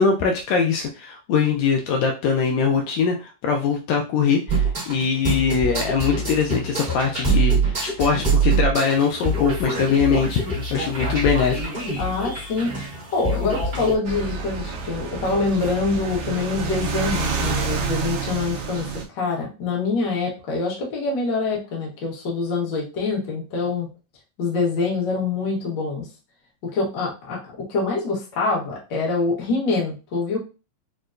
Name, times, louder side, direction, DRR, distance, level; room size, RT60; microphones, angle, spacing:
voice 1, 0.0-10.4 10.7-11.6, left 5 dB, 80° left, 2 dB, 1.8 m, -22 dB
sound 1, 4.5-14.0, right 3 dB, 45° right, 0.6 m, -24 dB
voice 2, 12.0-12.7 13.1-23.9 24.4-26.1 26.6-27.4 27.7-30.4, left 4 dB, 50° left, -3 dB, 1.4 m, -25 dB
sound 2, 14.0-19.0, right 5 dB, 75° right, 1.9 m, -28 dB
6.3 x 2.2 x 2.5 m, 0.31 s
omnidirectional pair, 3.4 m